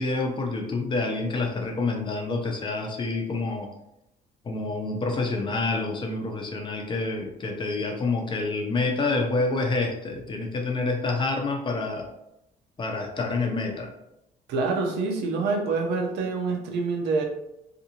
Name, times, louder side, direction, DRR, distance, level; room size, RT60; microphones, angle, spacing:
voice 1, 0.0-3.7 4.4-12.1 12.8-13.9, left 3 dB, 30° left, 2 dB, 0.6 m, -27 dB
voice 2, 14.5-17.3, right 3 dB, 80° right, 2 dB, 0.6 m, -26 dB
2.6 x 2.5 x 2.9 m, 0.84 s
cardioid pair, 110°, 17 cm